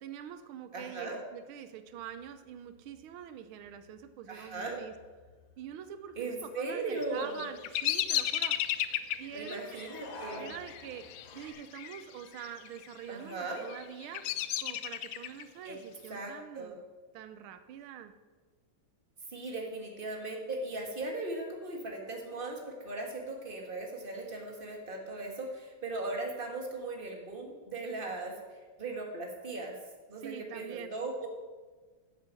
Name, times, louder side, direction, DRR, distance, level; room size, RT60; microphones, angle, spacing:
voice 1, 0.0-4.9 5.6-8.6 9.2-9.8 10.4-11.1 11.3-14.3 14.6-16.8 17.1-18.1 30.2-30.9, right 9 dB, 90° right, 10 dB, 1.6 m, -45 dB
voice 2, 0.7-1.2 4.3-4.8 6.2-7.4 9.3-10.5 13.1-13.6 15.6-15.8 16.1-16.8 19.3-29.8 30.1-31.3, right 2 dB, 25° right, 1 dB, 2.0 m, -38 dB
sound 1, 1.9-11.5, left 1 dB, 70° left, 2.7 m, -53 dB
Bird vocalization bird call bird song, 7.0-12.0 12.3-12.9 13.4-15.4, left 12 dB, 85° left, 1.5 m, -34 dB
12.0 x 7.4 x 7.6 m, 1.4 s
omnidirectional pair, 2.2 m